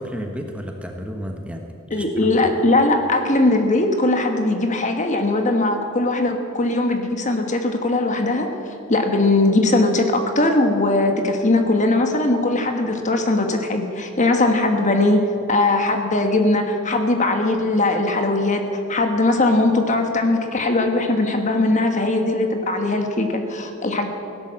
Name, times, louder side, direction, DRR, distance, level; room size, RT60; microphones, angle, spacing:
voice 1, 0.0-2.5, equal, 5° right, 3 dB, 1.3 m, -32 dB
voice 2, 1.9-8.5 8.9-15.2 15.5-18.6 18.9-24.1, left 2 dB, 35° left, 5 dB, 1.4 m, -20 dB
16.5 x 11.5 x 7.6 m, 2.7 s
head